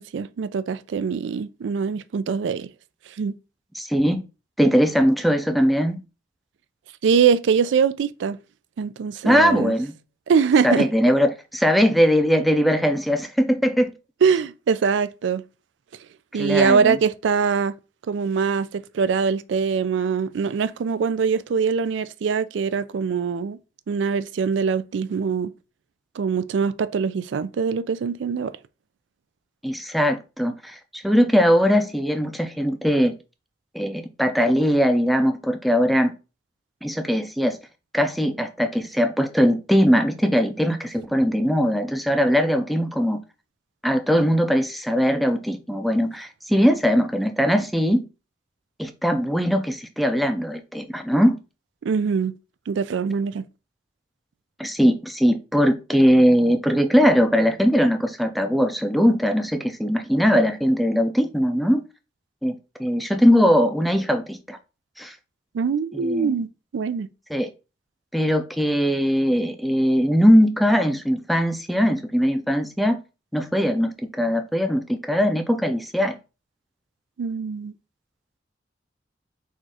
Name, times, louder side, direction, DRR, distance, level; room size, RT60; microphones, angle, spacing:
voice 1, 0.0-2.7 3.2-3.4 7.0-8.4 8.8-9.7 10.3-10.9 14.2-15.4 16.3-17.8 18.1-23.6 23.9-25.5 26.2-28.5 51.8-52.3 52.7-53.4 65.5-67.1 77.2-77.7, right 6 dB, 80° right, 0.3 m, -23 dB
voice 2, 3.7-4.2 4.6-6.0 9.2-9.9 10.6-13.9 16.3-17.0 29.6-33.1 33.7-36.1 36.8-37.6 37.9-43.2 43.8-48.0 48.8-51.4 54.6-61.8 62.4-64.6 65.0-65.2 65.9-66.4 67.3-67.5 68.1-73.0 73.3-76.1, equal, ahead, 0.4 m, -20 dB
4.2 x 2.4 x 4.6 m
head